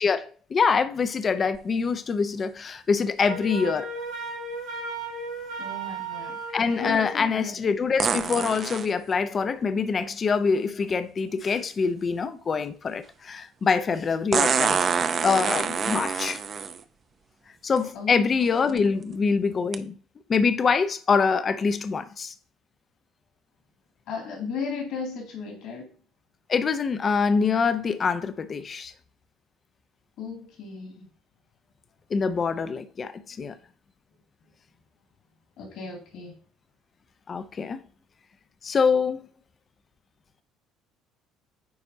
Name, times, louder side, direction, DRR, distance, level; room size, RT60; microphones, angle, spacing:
voice 1, 0.0-3.9 6.2-16.4 17.6-20.0 20.3-22.3 26.5-28.9 32.1-33.6 37.3-37.8 38.6-39.2, left 5 dB, 40° left, 0.6 m, -25 dB
sound 1, 1.5-1.6 8.0-8.9 10.9-11.0 14.3-16.8 17.8-17.9 18.5-18.8 19.7-19.8, right 6 dB, 45° right, 0.6 m, -26 dB
Wind instrument woodwind instrument, 3.2-7.1, right 2 dB, 80° right, 2.4 m, -34 dB
voice 2, 5.6-6.3 6.8-7.6 17.9-18.3 24.1-25.8 30.2-31.0 35.6-36.3, left 5 dB, 65° left, 2.3 m, -35 dB
9.5 x 4.3 x 2.7 m
hypercardioid pair, 60°, 0 cm